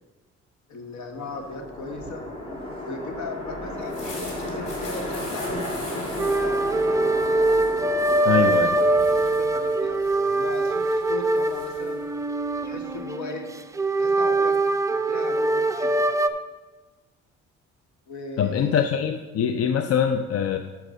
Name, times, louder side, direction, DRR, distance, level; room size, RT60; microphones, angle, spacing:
voice 1, 0.7-2.2 2.8-6.6 8.4-8.8 9.2-12.0 12.6-13.5 14.0-14.6 14.9-16.0 18.1-18.9, left 2 dB, 70° left, 4 dB, 1.4 m, -37 dB
sound 1, 1.0-10.0, left 1 dB, 20° left, 2.7 m, -34 dB
sound 2, 3.7-13.0, left 2 dB, 85° left, 2.5 m, -45 dB
sound 3, 6.2-16.3, right 2 dB, 10° right, 0.4 m, -23 dB
voice 2, 8.2-8.7 18.4-20.6, left 8 dB, 55° left, 8 dB, 0.5 m, -23 dB
6.1 x 5.8 x 6.6 m, 1.3 s
cardioid pair, 90°, 30 cm